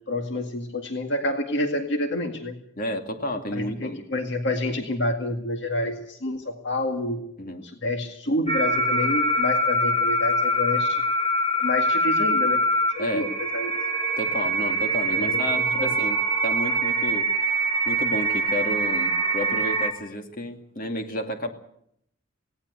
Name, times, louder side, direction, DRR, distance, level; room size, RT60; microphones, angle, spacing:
voice 1, 0.1-2.5 3.5-7.2 7.6-11.0 11.6-12.6 12.9-13.7 15.2-15.9, left 1 dB, 60° left, 5 dB, 2.0 m, -28 dB
voice 2, 2.8-4.0 7.4-7.6 13.0-13.3 14.2-17.3 17.9-21.5, left 1 dB, 45° left, 5 dB, 2.4 m, -31 dB
sound 1, 8.5-19.9, right 1 dB, 30° left, 3.2 m, -24 dB
19.0 x 18.0 x 8.2 m, 0.73 s
head